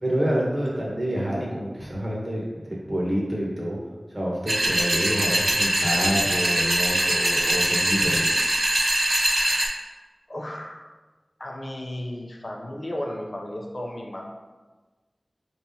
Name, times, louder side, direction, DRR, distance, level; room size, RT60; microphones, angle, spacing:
voice 1, 0.0-2.4 2.9-3.8 4.1-8.4, equal, 35° right, -4 dB, 1.2 m, -27 dB
sound 1, 4.5-9.7, right 1 dB, 50° right, 0.5 m, -22 dB
voice 2, 10.3-10.8 11.4-14.2, left 1 dB, 55° left, -1 dB, 0.6 m, -34 dB
4.5 x 3.5 x 2.7 m, 1.3 s
wide cardioid pair, 60°, 0 cm